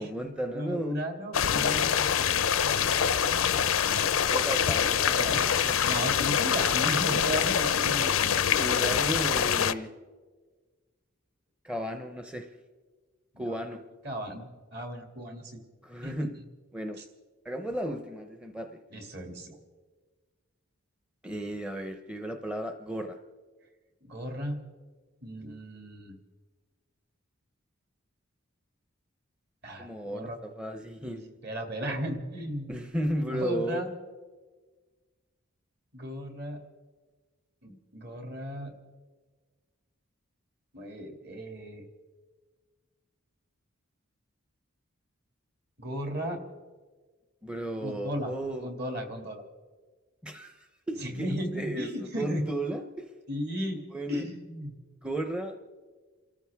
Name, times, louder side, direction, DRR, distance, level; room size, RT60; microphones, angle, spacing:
voice 1, 0.0-1.0 4.3-5.8 8.5-9.9 11.6-12.5 13.4-13.8 15.8-16.3 16.7-17.0 17.4-18.8 21.2-23.2 29.8-31.3 32.7-33.8 47.4-48.7 50.2-53.1 53.9-54.2 55.0-55.6, right 1 dB, 5° right, 5 dB, 0.7 m, -34 dB
voice 2, 0.5-2.0 5.1-8.3 13.3-13.6 14.0-15.6 16.0-16.3 18.9-19.6 24.0-24.6 25.2-26.2 29.6-30.4 31.4-32.7 33.3-33.9 35.9-36.6 37.6-38.7 40.7-41.8 45.8-46.4 47.8-48.3 48.6-49.4 51.0-52.4 53.3-53.8 54.1-54.8, equal, 50° right, 3 dB, 2.5 m, -35 dB
sound 1, 1.3-9.7, left 8 dB, 80° left, 0.6 m, -25 dB
29.5 x 14.0 x 3.5 m, 1.4 s
head